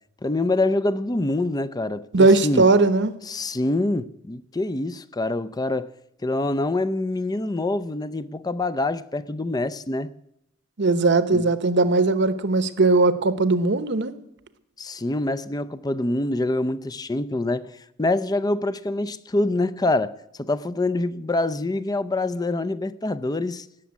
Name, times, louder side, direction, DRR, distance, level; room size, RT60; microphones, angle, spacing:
voice 1, 0.2-2.6 3.3-5.9 6.2-10.1 11.3-11.4 14.8-17.7 18.0-23.7, left 2 dB, 20° left, 0.5 m, -25 dB
voice 2, 2.1-3.2 10.8-14.1, right 3 dB, 60° right, 0.9 m, -19 dB
17.5 x 7.1 x 9.5 m
head